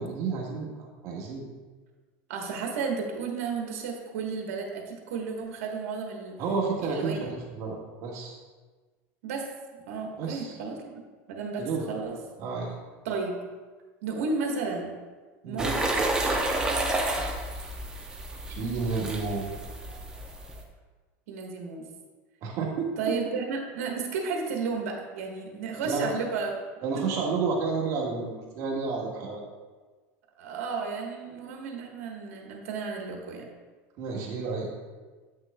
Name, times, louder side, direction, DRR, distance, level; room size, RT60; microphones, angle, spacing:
voice 1, 0.0-1.4 6.4-8.4 10.2-10.6 11.6-11.9 12.4-12.8 15.4-15.7 18.5-19.5 22.4-22.9 25.8-26.1 26.8-29.4 34.0-34.8, right 4 dB, 50° right, -2 dB, 1.5 m, -31 dB
voice 2, 2.3-6.4 6.8-7.2 9.2-9.5 9.9-12.1 13.0-13.4 14.0-14.9 15.4-15.9 21.3-21.8 23.0-26.5 26.9-27.1 30.4-33.5, right 4 dB, 90° right, 1 dB, 1.2 m, -33 dB
sound 1, 15.6-20.6, right 2 dB, 10° right, 0.7 m, -30 dB
8.8 x 6.1 x 2.2 m, 1.4 s
supercardioid pair, 135°, 7 cm